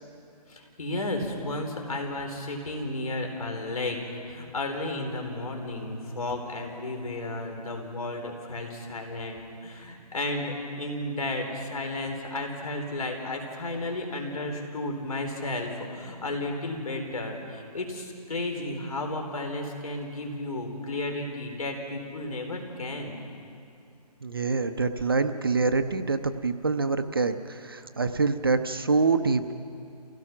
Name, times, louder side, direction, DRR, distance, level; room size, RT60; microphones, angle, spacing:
voice 1, 0.5-4.0 4.3-23.2, left 2 dB, 60° left, 3 dB, 4.0 m, -33 dB
voice 2, 24.2-29.5, right 4 dB, 35° right, 8 dB, 0.6 m, -26 dB
28.0 x 17.0 x 6.0 m, 2.5 s
hypercardioid pair, 175°, 21 cm